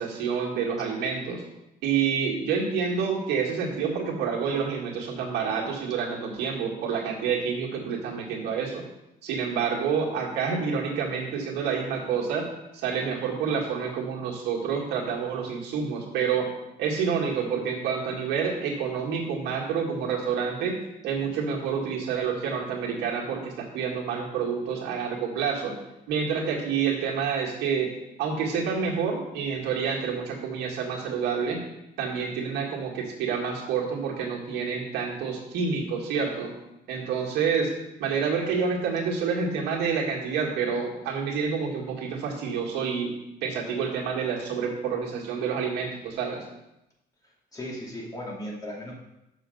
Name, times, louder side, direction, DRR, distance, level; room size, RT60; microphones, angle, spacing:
voice 1, 0.0-1.4 1.8-8.8 9.2-12.5 12.7-16.5 16.8-20.8 21.0-25.8 26.1-27.9 28.2-31.6 32.0-36.5 36.9-37.7 38.0-43.1 43.4-46.4, right 6 dB, 85° right, -2 dB, 1.9 m, -28 dB
voice 2, 47.5-48.9, left 1 dB, 20° left, -3 dB, 2.6 m, -36 dB
6.7 x 6.3 x 5.3 m, 0.90 s
cardioid pair, 110°, 17 cm